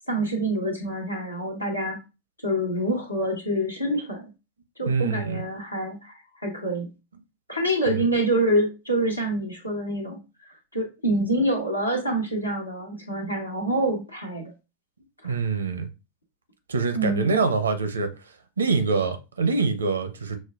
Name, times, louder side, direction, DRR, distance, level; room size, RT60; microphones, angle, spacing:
voice 1, 0.1-2.0 2.4-4.3 4.8-6.9 7.5-10.2 10.5-14.5 15.2-15.4 16.9-17.5, right 1 dB, 85° left, 1.2 m, -26 dB
voice 2, 4.9-5.4 7.9-8.1 15.2-15.9 16.7-18.1 18.6-20.4, right 4 dB, 70° right, 0.6 m, -25 dB
6.2 x 2.1 x 2.4 m
figure-of-eight pair, 90°, 0 cm